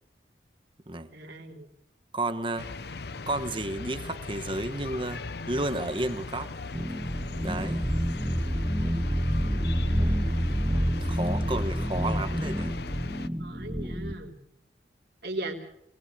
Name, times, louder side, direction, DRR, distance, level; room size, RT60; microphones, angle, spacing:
voice 1, 1.1-1.7 13.4-14.4 15.2-15.7, right 1 dB, 60° right, 1 dB, 3.3 m, -37 dB
voice 2, 2.1-2.7 3.3-6.5 7.4-7.9 11.0-12.8, right 2 dB, 25° right, 10 dB, 1.2 m, -32 dB
sound 1, 2.6-13.3, left 3 dB, 60° left, 0.8 m, -38 dB
sound 2, 6.7-14.2, equal, 10° right, 1.0 m, -28 dB
23.0 x 19.5 x 6.9 m, 0.75 s
head